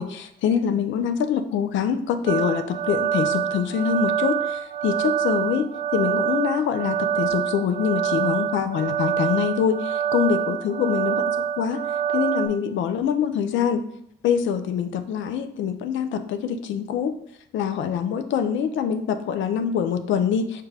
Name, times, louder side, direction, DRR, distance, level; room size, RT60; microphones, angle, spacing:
voice 1, 0.0-11.2 11.6-11.8 12.1-13.8 14.2-17.1 17.5-20.6, left 7 dB, 70° left, 9 dB, 0.4 m, -24 dB
sound 1, 2.3-12.5, right 8 dB, 45° right, 0.4 m, -26 dB
5.0 x 2.2 x 3.2 m, 0.71 s
cardioid pair, 90°, 20 cm